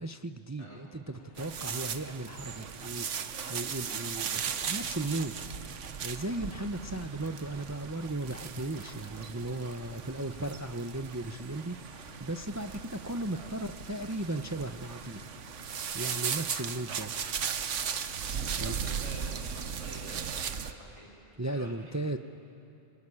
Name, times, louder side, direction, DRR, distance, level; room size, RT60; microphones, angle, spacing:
voice 1, 0.0-5.4 6.0-15.3 15.9-17.1 18.6-18.8 21.4-22.2, right 2 dB, 20° right, 8 dB, 0.5 m, -36 dB
voice 2, 0.6-0.9 6.8-7.0 10.3-10.5 13.3-13.5 16.9-17.0 18.4-21.1 21.5-21.9, right 1 dB, 70° right, -2 dB, 6.8 m, -48 dB
sound 1, 1.1-18.7, left 4 dB, 70° left, 1.8 m, -55 dB
sound 2, 1.4-20.7, right 7 dB, 90° right, 1.3 m, -37 dB
25.5 x 23.0 x 9.9 m, 2.6 s
omnidirectional pair, 1.2 m